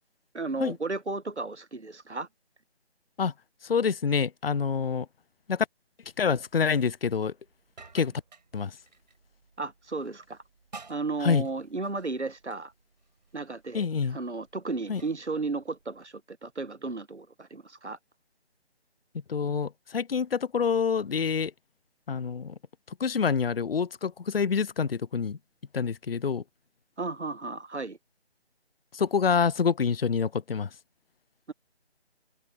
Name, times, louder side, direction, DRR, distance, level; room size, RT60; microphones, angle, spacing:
voice 1, 0.3-2.3 9.6-10.4 10.9-12.7 13.3-18.0 27.0-28.0 31.5-31.6, right 3 dB, 85° right, 1.4 m, -34 dB
voice 2, 3.6-5.1 5.5-5.7 6.2-7.3 7.9-8.1 8.5-8.8 11.2-11.5 13.7-14.2 14.9-15.0 19.3-21.5 22.1-22.5 22.9-25.4 25.7-26.4 28.9-30.7, left 6 dB, 60° left, 0.5 m, -27 dB
sound 1, 6.0-16.1, right 4 dB, 40° right, 5.6 m, -55 dB
figure-of-eight pair, 160°, 33 cm